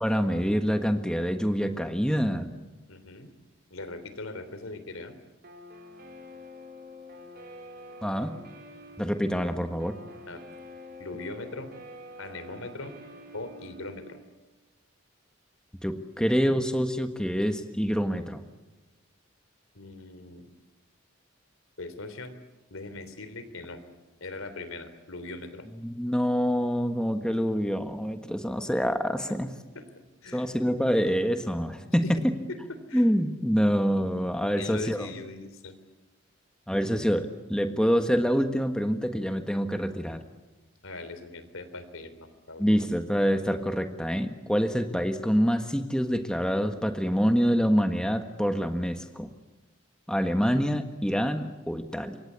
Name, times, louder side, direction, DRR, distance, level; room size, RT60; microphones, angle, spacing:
voice 1, 0.0-2.6 8.0-8.3 9.0-10.0 15.8-18.4 25.8-29.5 30.3-32.3 32.9-35.1 36.7-40.2 42.6-49.3 50.1-52.2, equal, 5° left, 7 dB, 1.5 m, -26 dB
voice 2, 2.9-3.3 3.7-5.1 10.3-10.4 11.0-11.8 12.2-13.0 13.3-14.2 19.8-20.4 21.8-22.3 22.7-23.8 24.2-25.7 29.3-29.4 29.8-29.9 30.2-30.5 32.0-32.1 32.5-33.1 34.5-35.7 40.8-42.9, left 2 dB, 85° left, 12 dB, 3.4 m, -40 dB
Guitar, 5.4-14.1, left 1 dB, 50° right, 5.2 m, -47 dB
27.5 x 24.0 x 8.3 m, 1.1 s
head